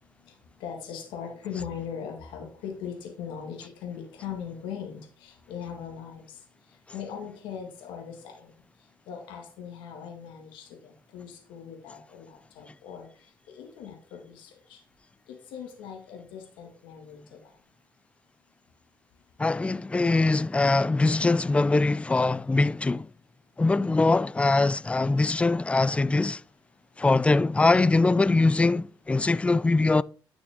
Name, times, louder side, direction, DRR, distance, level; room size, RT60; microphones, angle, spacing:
voice 1, 0.6-6.4 6.9-8.5 9.1-13.1 13.5-14.8 15.5-17.5, left 7 dB, 90° left, 1.9 m, -40 dB
voice 2, 19.4-23.1 23.6-26.4 27.0-30.0, left 3 dB, 15° left, 0.4 m, -22 dB
10.5 x 6.2 x 3.6 m
cardioid pair, 80°, 8 cm